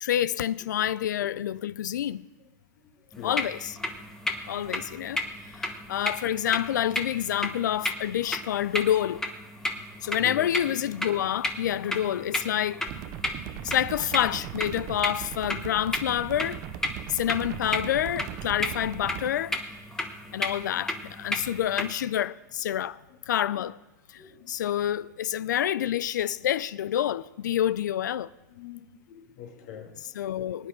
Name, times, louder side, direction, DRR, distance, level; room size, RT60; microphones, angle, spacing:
voice 1, 0.0-2.3 3.2-3.8 4.5-5.2 5.6-9.2 10.0-12.8 13.6-16.6 17.1-19.6 20.3-23.0 23.3-23.8 24.1-24.2 24.5-28.3 30.0-30.7, left 11 dB, 90° left, 0.4 m, -28 dB
sound 1, 3.1-21.9, left 1 dB, 5° left, 1.0 m, -34 dB
sound 2, 12.9-19.3, right 12 dB, 40° right, 0.6 m, -39 dB
voice 2, 24.2-24.5 28.6-29.9, left 7 dB, 60° left, 2.3 m, -42 dB
20.5 x 9.5 x 3.8 m
supercardioid pair, 135°, 10 cm